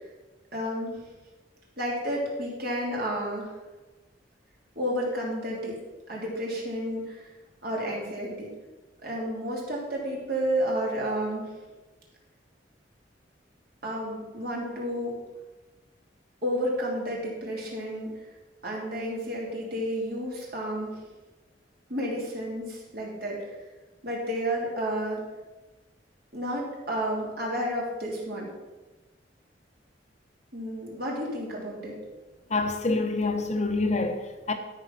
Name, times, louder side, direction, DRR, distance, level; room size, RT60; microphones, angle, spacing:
voice 1, 0.5-1.0 1.8-3.5 4.7-5.7 6.1-7.3 7.6-8.5 9.0-11.4 13.8-15.1 16.4-18.1 18.6-20.9 21.9-23.5 24.0-25.2 26.3-28.5 30.5-31.9, equal, 60° right, 3.1 m, -31 dB
voice 2, 32.5-34.5, left 3 dB, 40° left, 0.9 m, -27 dB
12.5 x 5.5 x 5.9 m
head